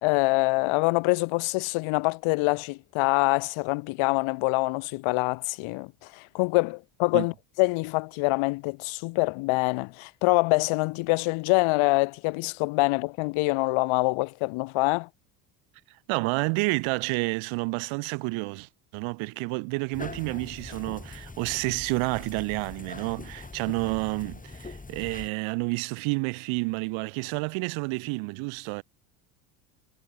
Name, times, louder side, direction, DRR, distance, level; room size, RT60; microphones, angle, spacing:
voice 1, 0.0-7.3 7.6-15.1, left 25 dB, 70° left, 1.8 m, -25 dB
voice 2, 16.1-28.8, right 29 dB, 70° right, 1.1 m, -30 dB
sound 1, 19.9-25.3, left 3 dB, 15° left, 5.6 m, -42 dB
supercardioid pair, 90°, 50 cm